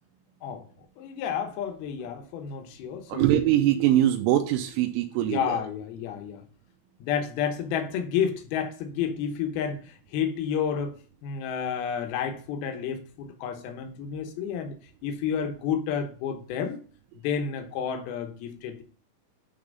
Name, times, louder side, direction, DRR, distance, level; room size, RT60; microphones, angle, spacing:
voice 1, 1.0-3.3 5.2-6.4 7.0-10.9 11.2-14.8 15.0-16.8 17.2-18.8, left 8 dB, 75° left, 5 dB, 2.3 m, -30 dB
voice 2, 3.1-5.6, right 12 dB, 85° right, 4 dB, 2.9 m, -23 dB
9.6 x 3.5 x 5.2 m, 0.41 s
omnidirectional pair, 5.9 m